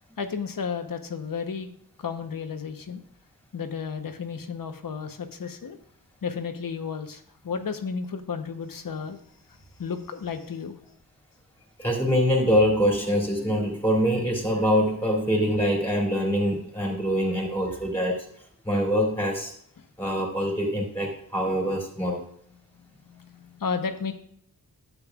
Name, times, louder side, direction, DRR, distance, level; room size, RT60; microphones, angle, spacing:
voice 1, 0.2-1.7 2.0-3.0 3.5-5.8 6.2-9.2 9.5-10.8 19.8-19.9 22.7-24.1, left 6 dB, 65° left, 7 dB, 0.9 m, -33 dB
voice 2, 11.8-18.2 18.6-19.5 20.0-22.2, equal, 5° left, -1 dB, 2.8 m, -24 dB
12.0 x 8.5 x 2.4 m, 0.63 s
wide cardioid pair, 100°, 36 cm